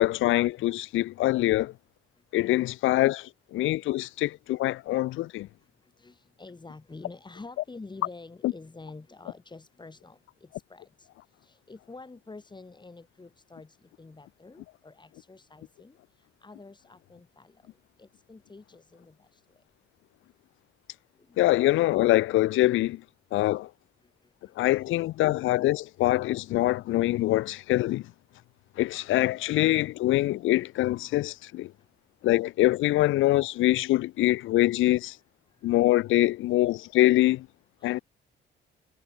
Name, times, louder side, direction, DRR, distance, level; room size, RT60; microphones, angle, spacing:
voice 1, 0.0-1.7 2.3-5.5 8.4-8.5 21.4-23.0 23.3-23.7 24.6-28.0 28.8-31.7 32.2-35.2 35.6-37.5 37.8-38.0, left 16 dB, 80° left, 0.6 m, -24 dB
voice 2, 2.1-2.4 3.7-4.0 4.5-4.6 4.9-5.3 5.6-19.6 21.1-21.4 24.0-25.0 29.0-29.1 31.8-31.9 35.5-35.8 37.8-38.0, left 3 dB, 20° left, 6.8 m, -49 dB
cardioid pair, 90°, 20 cm